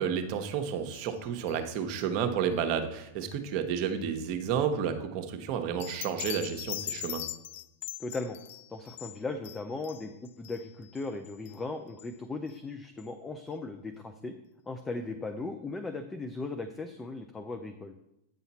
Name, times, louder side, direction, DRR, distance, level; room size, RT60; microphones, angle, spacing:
voice 1, 0.0-7.3, right 7 dB, 50° right, 6 dB, 1.1 m, -31 dB
sound 1, 0.9-1.2 1.5-1.7 2.0-2.1 5.8-11.6 12.0-12.1 12.5-12.6 13.0-13.1, left 13 dB, 65° left, 0.3 m, -41 dB
voice 2, 8.0-8.4 8.7-10.1 10.4-14.3 14.7-18.1, left 3 dB, 15° left, 8 dB, 0.6 m, -37 dB
9.2 x 5.7 x 4.2 m, 0.84 s
hypercardioid pair, 110°, 0 cm